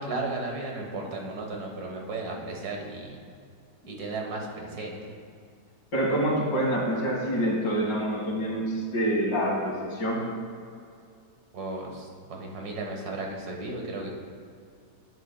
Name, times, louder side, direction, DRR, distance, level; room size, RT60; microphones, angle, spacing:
voice 1, 0.0-3.2 3.9-5.0 11.5-14.1, right 2 dB, 65° right, 0 dB, 1.8 m, -34 dB
voice 2, 5.9-10.2, right 1 dB, 80° left, -2 dB, 2.2 m, -26 dB
12.0 x 9.1 x 2.2 m, 2.4 s
omnidirectional pair, 1.8 m